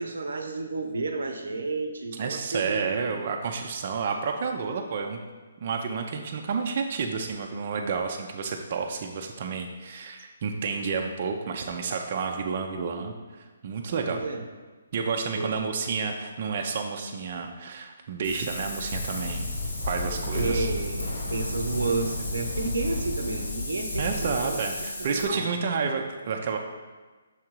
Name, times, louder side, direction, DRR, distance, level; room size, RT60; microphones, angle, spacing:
voice 1, 0.0-3.1 14.1-14.4 15.3-15.5 20.3-24.6 25.0-25.5, right 3 dB, 85° right, 5 dB, 0.7 m, -31 dB
voice 2, 2.1-5.2 5.6-14.2 14.9-19.5 19.9-20.7 24.0-26.6, right 5 dB, 45° right, 2 dB, 0.6 m, -30 dB
Wind, 18.2-25.2, left 2 dB, 75° left, 2.0 m, -32 dB
6.4 x 3.7 x 4.5 m, 1.3 s
hypercardioid pair, 155°, 0 cm